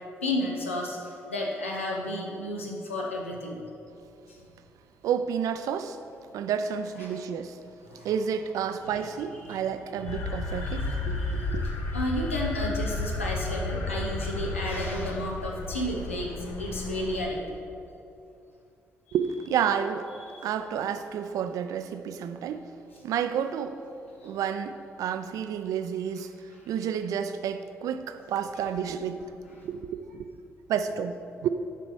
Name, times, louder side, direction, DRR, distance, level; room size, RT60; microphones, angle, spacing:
voice 1, 0.2-3.6 4.3-4.4 7.0-7.1 7.9-8.1 9.4-9.6 10.0-11.5 11.9-16.3 16.6-17.4 20.3-20.4 24.2-24.3, left 1 dB, 85° left, 0.7 m, -32 dB
voice 2, 5.0-6.0 6.3-7.6 8.0-11.6 19.1-20.1 20.4-22.6 23.0-23.8 24.2-30.2 30.7-31.5, right 8 dB, 60° right, 0.4 m, -30 dB
sound 1, 10.0-17.3, left 2 dB, 55° left, 0.8 m, -32 dB
7.6 x 5.1 x 4.6 m
figure-of-eight pair, 40°, 7 cm